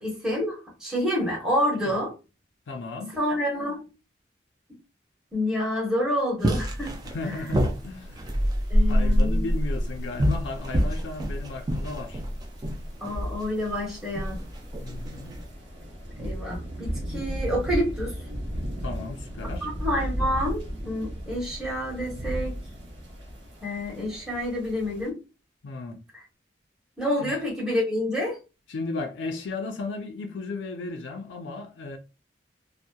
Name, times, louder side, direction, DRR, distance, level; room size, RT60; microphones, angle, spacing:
voice 1, 0.0-2.1 3.1-3.9 5.3-7.0 8.7-9.5 13.0-14.4 16.2-18.2 19.6-22.5 23.6-25.2 27.0-28.4, left 1 dB, 5° right, 0.9 m, -28 dB
voice 2, 2.7-3.2 7.0-8.4 8.9-12.2 14.8-15.4 18.8-19.7 25.6-26.0 27.2-27.3 28.7-32.0, left 3 dB, 80° left, 0.4 m, -35 dB
paint in spray, 6.4-15.5, equal, 20° right, 0.3 m, -26 dB
sound 1, 6.9-25.1, equal, 75° right, 0.7 m, -37 dB
2.7 x 2.0 x 2.2 m
head